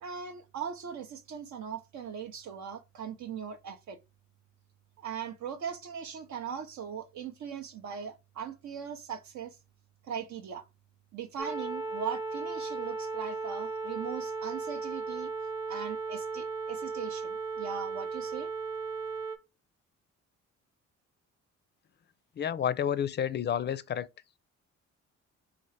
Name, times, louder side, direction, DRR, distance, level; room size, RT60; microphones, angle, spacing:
voice 1, 0.0-4.0 5.0-9.6 10.0-10.7 11.1-15.3 15.7-18.5, right 7 dB, 65° right, 0.6 m, -39 dB
sound 1, 11.4-19.4, right 4 dB, 10° right, 0.8 m, -36 dB
voice 2, 22.4-24.1, left 9 dB, 35° left, 0.4 m, -30 dB
4.3 x 2.4 x 3.1 m
cardioid pair, 90°, 30 cm